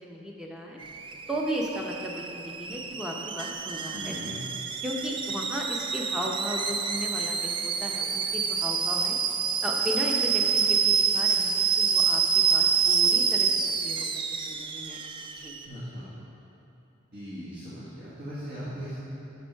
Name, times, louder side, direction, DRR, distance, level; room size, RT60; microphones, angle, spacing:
voice 1, 0.0-0.8 1.3-4.1 4.8-9.2 9.6-14.1 14.5-15.0 15.4-15.6, equal, 5° right, -2 dB, 0.8 m, -35 dB
Alarm / Boiling, 0.8-15.6, right 6 dB, 25° right, 0.3 m, -27 dB
voice 2, 3.9-4.4 15.7-16.1 17.1-19.1, equal, 50° right, -11 dB, 1.7 m, -38 dB
11.5 x 5.5 x 4.7 m, 3.0 s
head